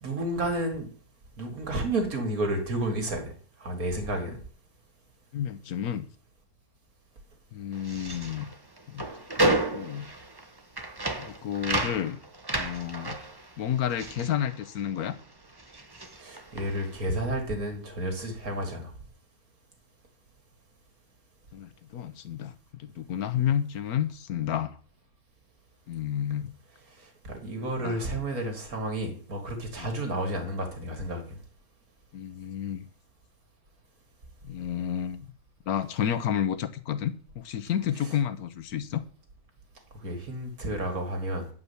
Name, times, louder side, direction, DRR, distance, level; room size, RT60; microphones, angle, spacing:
voice 1, 0.0-0.9 1.4-3.3 3.6-4.4 16.2-18.9 27.0-31.4 40.0-41.5, right 1 dB, 70° right, 4 dB, 2.7 m, -31 dB
voice 2, 5.3-6.1 7.5-8.5 8.9-9.1 9.4-10.1 11.2-12.2 12.5-13.2 13.6-15.2 21.5-24.8 25.9-26.5 27.8-28.0 29.8-29.9 32.1-32.9 34.4-35.3 35.7-39.0, left 9 dB, 75° left, 13 dB, 1.3 m, -31 dB
sound 1, 7.7-15.2 15.5-17.0, right 1 dB, 15° right, 1.0 m, -32 dB
9.5 x 5.5 x 6.9 m, 0.43 s
omnidirectional pair, 1.6 m